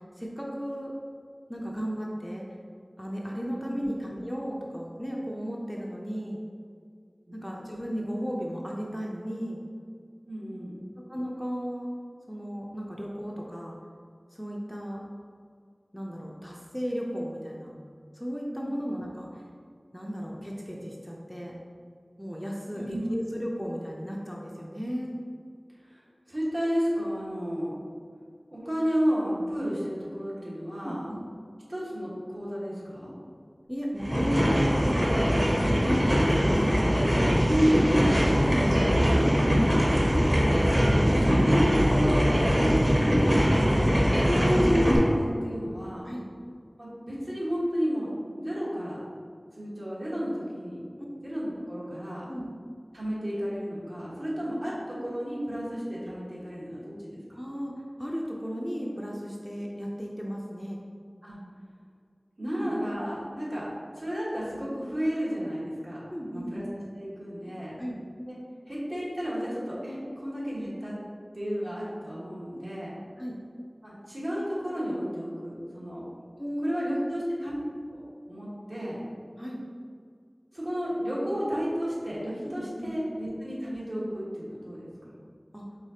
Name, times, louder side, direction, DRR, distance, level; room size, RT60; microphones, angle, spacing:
voice 1, 0.2-0.9 1.5-2.4 3.0-6.4 7.3-9.6 11.1-11.9 12.3-13.8 14.3-15.0 15.9-17.7 18.1-19.4 19.9-21.5 22.2-25.1 30.8-31.2 33.7-36.7 38.3-38.6 44.1-44.3 46.0-46.2 52.3-52.4 57.3-57.7 58.0-60.8 62.4-62.7 66.1-66.6 67.8-67.9 73.2-73.4 76.4-76.9 79.4-79.6 82.4-82.9 85.5-85.6, equal, 5° left, -3 dB, 0.5 m, -35 dB
voice 2, 10.2-10.8 22.7-23.1 25.8-26.0 26.3-27.8 28.5-31.1 31.7-33.1 37.4-38.5 39.0-39.3 39.7-43.9 44.4-46.1 46.8-49.0 49.6-50.8 51.2-52.3 52.9-57.2 61.2-61.4 62.4-63.7 63.9-66.0 66.3-66.7 66.9-67.8 68.3-68.4 68.7-70.9 71.3-73.0 73.8-76.0 76.6-77.6 77.9-79.0 80.5-85.1, equal, 55° right, -8 dB, 1.4 m, -32 dB
sound 1, 34.0-45.0, equal, 20° right, 0.9 m, -22 dB
4.8 x 3.6 x 2.8 m, 2.2 s
wide cardioid pair, 40°, 0 cm